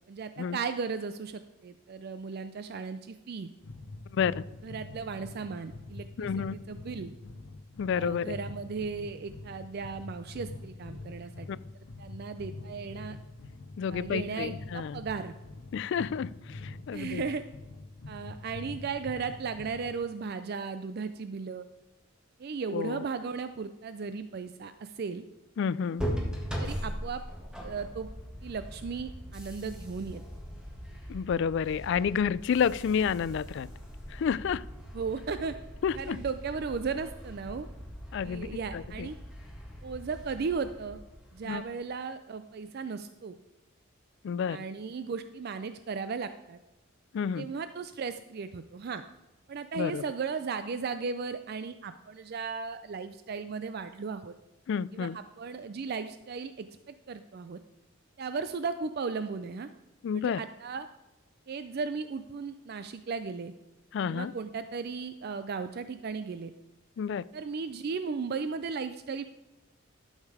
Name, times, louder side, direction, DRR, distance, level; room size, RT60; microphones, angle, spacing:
voice 1, 0.1-3.5 4.6-7.1 7.9-11.5 12.0-13.2 13.9-15.3 16.9-17.4 18.1-21.7 22.4-25.2 26.6-27.2 27.6-28.1 28.4-30.2 34.9-35.5 36.0-37.7 38.2-39.2 39.8-41.0 41.3-43.4 44.5-46.6 47.4-49.0 49.5-54.3 54.9-57.6 58.2-59.7 60.1-60.9 61.5-63.5 64.1-66.5 67.3-69.2, right 5 dB, 50° right, 0.4 m, -36 dB
sound 1, 3.6-20.0, left 2 dB, 80° left, 0.7 m, -44 dB
voice 2, 4.1-4.4 6.2-6.6 7.8-8.4 11.5-11.6 13.8-15.0 15.7-17.2 22.7-23.0 25.6-26.0 31.1-33.7 34.1-34.7 35.8-36.2 38.1-38.5 38.7-39.1 41.4-41.6 44.2-44.6 47.1-47.5 49.7-50.0 54.7-55.2 60.0-60.4 63.9-64.3 67.0-67.3, left 7 dB, 60° left, 0.3 m, -30 dB
sound 2, 26.0-41.7, equal, 5° right, 1.6 m, -40 dB
12.0 x 6.5 x 4.8 m
head